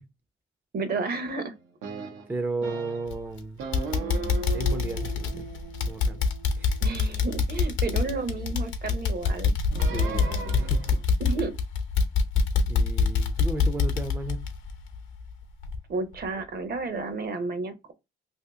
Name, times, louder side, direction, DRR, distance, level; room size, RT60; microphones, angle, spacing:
voice 1, 0.7-1.5 6.8-9.5 11.2-11.5 15.9-17.9, right 3 dB, 50° right, 0.8 m, -31 dB
sound 1, 1.8-3.2 3.6-7.9 9.7-11.0, right 4 dB, 90° right, 0.7 m, -38 dB
voice 2, 2.3-3.6 4.5-5.5 5.9-6.2 6.6-6.9 9.9-11.0 12.7-14.5, right 2 dB, 10° right, 0.4 m, -34 dB
sound 2, 3.1-3.4 3.7-15.3 15.6-15.8 16.2-16.3, left 4 dB, 75° left, 0.8 m, -25 dB
2.8 x 2.6 x 3.4 m
cardioid pair, 90°, 20 cm